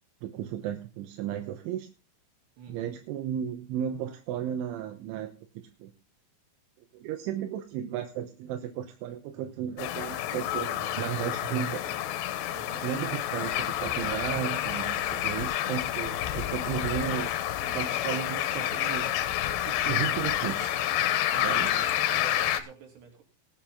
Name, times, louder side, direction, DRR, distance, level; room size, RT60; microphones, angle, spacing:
voice 1, 0.2-1.9 2.7-5.9 6.9-11.8 12.8-17.3 17.6-19.1 19.6-20.7 21.4-21.7, right 10 dB, 85° right, 3.5 m, -34 dB
voice 2, 2.6-2.9 12.5-13.2 16.1-16.4 21.3-23.2, right 5 dB, 65° right, 5.2 m, -47 dB
sound 1, 9.8-22.6, left 12 dB, 75° left, 2.9 m, -29 dB
20.0 x 7.6 x 3.7 m
omnidirectional pair, 5.4 m